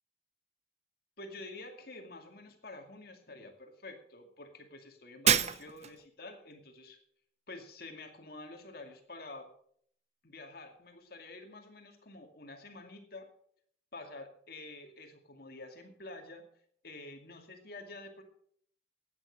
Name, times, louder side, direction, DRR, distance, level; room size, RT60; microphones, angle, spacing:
voice 1, 1.2-7.0 7.5-9.5 10.2-13.3 13.9-16.4 16.8-18.2, left 2 dB, 55° left, 4 dB, 2.4 m, -48 dB
Shatter, 5.3-6.1, right 8 dB, 35° right, 0.6 m, -27 dB
13.5 x 9.4 x 6.4 m, 0.63 s
head